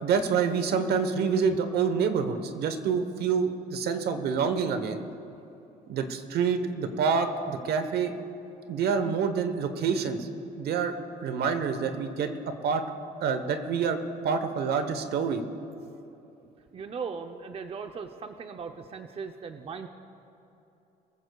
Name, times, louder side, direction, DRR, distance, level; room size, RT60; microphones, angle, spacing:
voice 1, 0.0-5.0 5.9-8.1 8.7-10.3 10.6-10.9 11.2-12.3 12.6-12.8 13.2-14.0 14.2-15.4, right 6 dB, 70° right, 8 dB, 1.1 m, -27 dB
voice 2, 16.4-19.9, right 5 dB, 35° right, 6 dB, 0.6 m, -38 dB
22.0 x 14.5 x 2.3 m, 2.9 s
cardioid pair, 110°, 17 cm